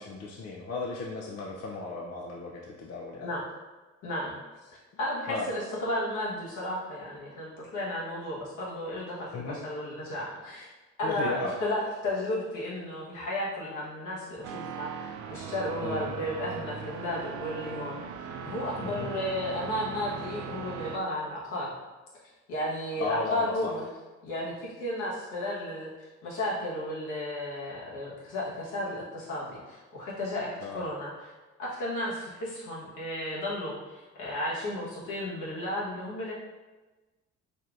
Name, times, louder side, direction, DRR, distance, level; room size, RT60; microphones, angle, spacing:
voice 1, 0.0-3.3 5.3-5.5 9.3-9.6 11.0-11.5 15.8-16.1 18.8-19.1 23.0-23.7 30.6-30.9, left 3 dB, 55° left, -2 dB, 0.6 m, -35 dB
voice 2, 4.0-4.3 5.0-10.6 11.0-21.7 22.5-23.8 24.2-25.9 26.2-31.1 31.6-36.3, left 1 dB, 90° left, -6 dB, 1.4 m, -33 dB
sound 1, 14.4-21.0, right 6 dB, 70° right, 0.4 m, -39 dB
4.2 x 3.3 x 2.5 m, 1.2 s
cardioid pair, 90°, 30 cm